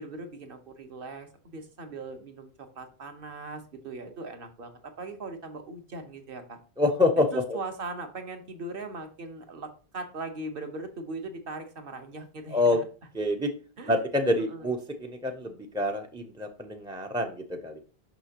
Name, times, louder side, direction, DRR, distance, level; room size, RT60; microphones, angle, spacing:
voice 1, 0.0-4.7 5.0-6.6 7.3-12.8 13.8-14.0 14.5-14.7, right 3 dB, 60° right, 6 dB, 1.1 m, -39 dB
voice 2, 6.8-7.6 12.5-12.8 13.1-13.5 13.9-17.8, left 2 dB, 5° right, 2 dB, 0.3 m, -27 dB
6.1 x 5.7 x 2.8 m, 0.36 s
omnidirectional pair, 1.1 m